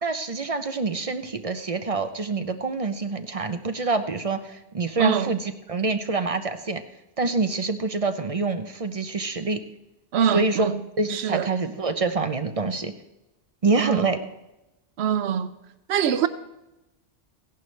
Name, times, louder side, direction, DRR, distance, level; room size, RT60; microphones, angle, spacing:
voice 1, 0.0-6.8 7.2-9.6 10.2-10.7 11.0-12.9 13.6-14.2, right 3 dB, 40° right, 0.7 m, -26 dB
voice 2, 5.0-5.3 10.1-10.8 11.1-11.5 13.8-14.1 15.0-15.5 15.9-16.3, right 8 dB, 80° right, 0.9 m, -23 dB
16.0 x 11.0 x 3.3 m
omnidirectional pair, 1.1 m